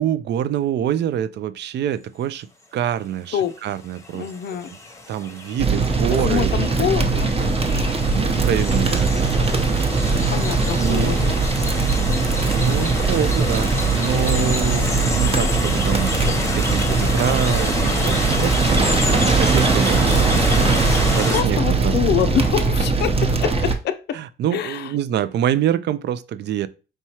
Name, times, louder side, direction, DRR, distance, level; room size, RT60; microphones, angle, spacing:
voice 1, 0.0-4.3 5.1-6.5 8.1-9.7 10.8-11.1 12.5-16.1 16.5-18.8 19.0-22.0 24.1-26.7, right 10 dB, 60° right, 0.4 m, -26 dB
sound 1, 3.4-21.4, left 2 dB, 15° left, 0.8 m, -28 dB
voice 2, 4.2-4.7 6.1-7.3 10.3-11.4 21.3-24.2 24.5-24.9, left 9 dB, 60° left, 0.5 m, -25 dB
sound 2, 5.6-23.7, right 4 dB, 30° right, 0.7 m, -20 dB
sound 3, 19.8-21.1, right 1 dB, 15° right, 1.0 m, -38 dB
4.6 x 3.0 x 2.8 m
cardioid pair, 90°, 20 cm